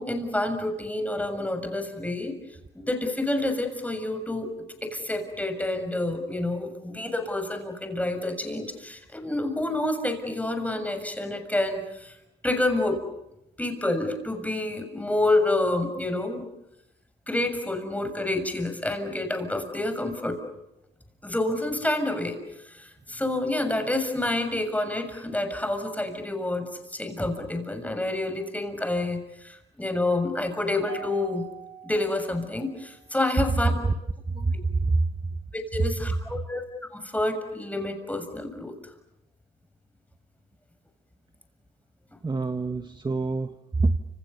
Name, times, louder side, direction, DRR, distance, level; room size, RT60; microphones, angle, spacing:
voice 1, 0.0-2.4 2.7-4.5 4.8-12.1 12.4-13.0 13.6-16.4 17.3-20.4 21.2-22.4 22.6-31.4 31.8-33.7 35.5-36.6 36.9-38.7, left 2 dB, 5° left, 6 dB, 6.8 m, -28 dB
Mallet percussion, 30.9-33.3, right 10 dB, 65° right, 4.2 m, -44 dB
voice 2, 34.3-35.4 42.2-44.0, right 3 dB, 20° right, 7 dB, 1.5 m, -26 dB
30.0 x 27.5 x 7.0 m, 0.87 s
cardioid pair, 90°, 20 cm